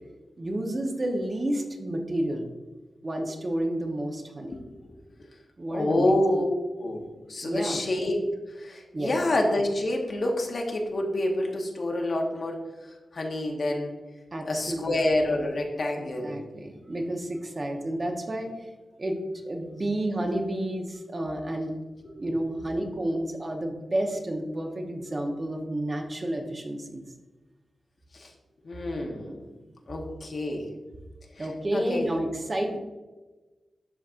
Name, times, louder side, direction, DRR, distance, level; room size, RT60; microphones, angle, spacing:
voice 1, 0.4-2.5 3.0-4.6 5.6-6.4 7.4-7.8 8.9-9.2 14.3-14.9 16.0-18.7 19.0-21.8 22.2-27.0 31.4-32.8, right 1 dB, 35° right, 2 dB, 1.0 m, -30 dB
voice 2, 5.7-6.4 6.8-8.2 8.5-12.6 13.1-13.9 14.5-16.4 28.1-28.3 28.6-29.4 29.9-30.7 31.3-32.1, left 1 dB, 60° left, 1 dB, 1.1 m, -28 dB
12.0 x 4.2 x 2.6 m, 1.2 s
wide cardioid pair, 85°, 0 cm